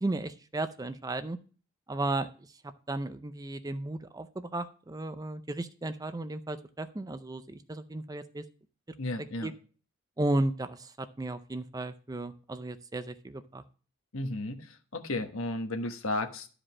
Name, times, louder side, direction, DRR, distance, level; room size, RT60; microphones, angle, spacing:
voice 1, 0.0-1.4 1.9-2.3 2.9-8.4 9.4-9.5 10.2-13.6, right 2 dB, 15° right, 11 dB, 0.5 m, -34 dB
voice 2, 9.0-9.5 14.1-16.5, left 2 dB, 70° left, 6 dB, 1.2 m, -34 dB
11.5 x 5.0 x 6.0 m, 0.39 s
head